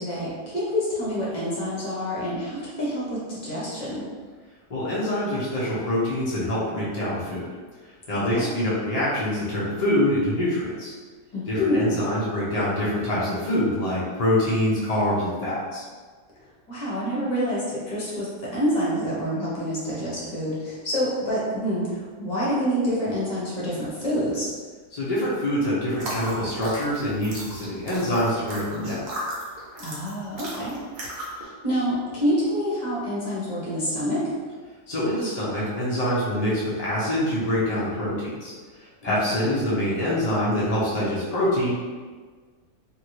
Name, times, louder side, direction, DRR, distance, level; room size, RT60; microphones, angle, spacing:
voice 1, 0.0-4.0 8.1-8.5 11.3-12.0 16.7-24.5 29.8-30.7 31.4-34.3 39.0-39.1, equal, 35° left, -7 dB, 0.8 m, -27 dB
voice 2, 4.7-7.5 8.1-10.9 11.5-15.8 24.9-29.0 34.9-38.5 38.8-41.7, left 1 dB, 65° left, -8 dB, 0.3 m, -25 dB
sound 1, 25.9-31.4, right 1 dB, 65° right, 1.1 m, -36 dB
2.7 x 2.6 x 3.0 m, 1.5 s
omnidirectional pair, 1.7 m